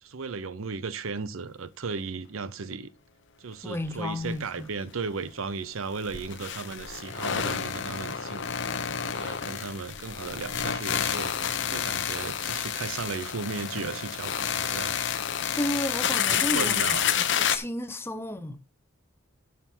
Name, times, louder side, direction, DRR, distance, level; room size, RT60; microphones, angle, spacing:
voice 1, 0.0-2.9 3.4-8.6 9.1-11.3 11.7-15.0 16.3-17.1, right 4 dB, 90° right, 0.7 m, -35 dB
voice 2, 3.6-4.7 15.6-18.6, left 1 dB, 10° left, 0.7 m, -33 dB
sound 1, 3.9-4.0 4.3-4.4 5.9-17.6, left 8 dB, 65° left, 0.9 m, -29 dB
11.0 x 6.0 x 4.5 m
head